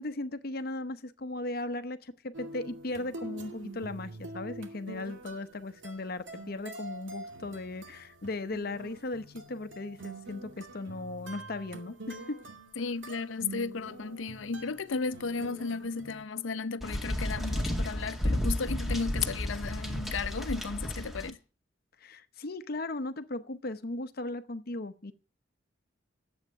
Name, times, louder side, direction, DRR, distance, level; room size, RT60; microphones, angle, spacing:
voice 1, 0.0-12.4 22.0-25.1, left 2 dB, 50° left, 0.8 m, -37 dB
sound 1, 2.3-16.2, right 2 dB, 80° right, 2.3 m, -45 dB
voice 2, 12.8-21.4, left 4 dB, 85° left, 0.6 m, -34 dB
sound 2, 16.8-21.3, left 1 dB, ahead, 2.0 m, -32 dB
11.0 x 8.1 x 9.0 m
head